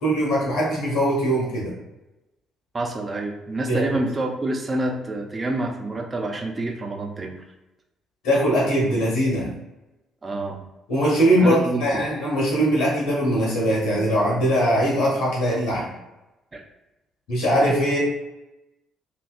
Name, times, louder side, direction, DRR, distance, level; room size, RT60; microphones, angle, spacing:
voice 1, 0.0-1.7 3.6-3.9 8.2-9.5 10.9-15.9 17.3-18.0, equal, 65° left, -4 dB, 0.7 m, -21 dB
voice 2, 2.7-7.4 10.2-10.6 11.4-11.8 16.5-16.6, right 2 dB, 30° right, 2 dB, 0.4 m, -27 dB
2.7 x 2.2 x 2.3 m, 0.99 s
figure-of-eight pair, 45°, 0 cm